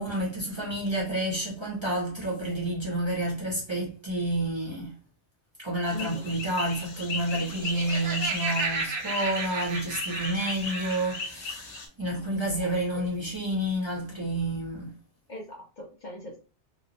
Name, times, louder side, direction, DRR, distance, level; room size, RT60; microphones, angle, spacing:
voice 1, 0.0-4.9 5.6-15.0, right 1 dB, 30° right, 0.7 m, -30 dB
sound 1, 5.9-11.9, left 3 dB, 80° left, 0.9 m, -36 dB
voice 2, 5.9-6.3 12.6-13.1 15.3-16.4, left 2 dB, 50° left, 0.6 m, -40 dB
Laughter, 7.4-11.2, right 4 dB, 80° right, 1.0 m, -34 dB
2.9 x 2.1 x 2.5 m
omnidirectional pair, 1.2 m